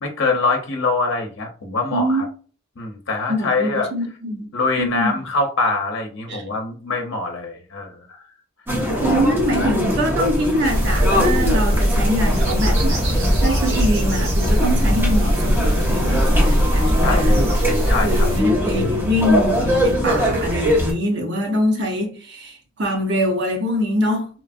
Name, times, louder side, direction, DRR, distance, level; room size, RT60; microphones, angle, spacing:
voice 1, 0.0-2.2 2.8-3.9 4.5-8.0 17.0-17.3 17.9-18.3, left 3 dB, 65° left, 0.6 m, -23 dB
voice 2, 1.9-2.2 3.3-4.5 4.8-5.2 6.3-6.5 9.0-17.5 18.0-24.3, equal, 55° right, 0.8 m, -23 dB
sound 1, 8.7-20.9, equal, 10° right, 1.0 m, -22 dB
sound 2, 10.6-18.4, equal, 35° right, 1.2 m, -20 dB
3.0 x 2.4 x 2.5 m
head